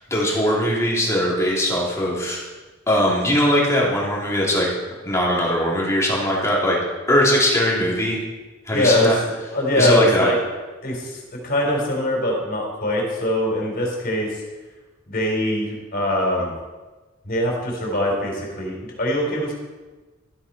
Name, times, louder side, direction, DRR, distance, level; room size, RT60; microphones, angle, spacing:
voice 1, 0.0-2.4 2.9-4.7 5.0-6.8 7.1-8.2 8.7-9.2 9.7-10.3, left 1 dB, 15° left, -4 dB, 3.2 m, -20 dB
voice 2, 8.7-10.4 10.8-14.4 15.1-16.5 17.2-19.5, left 1 dB, 50° left, -1 dB, 3.9 m, -22 dB
13.0 x 11.5 x 4.4 m, 1.2 s
head